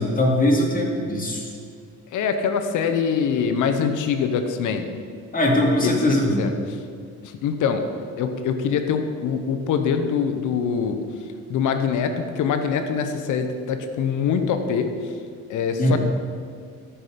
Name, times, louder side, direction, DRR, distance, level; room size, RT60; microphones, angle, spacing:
voice 1, 0.0-1.4 5.3-6.4 15.8-16.0, left 1 dB, 30° left, -1 dB, 2.3 m, -20 dB
voice 2, 2.1-4.9 5.8-6.8 7.2-7.8 8.2-11.0 11.5-14.9 15.5-16.0, left 6 dB, 80° left, 8 dB, 0.9 m, -24 dB
13.5 x 5.8 x 5.1 m, 2.2 s
cardioid pair, 90°, 30 cm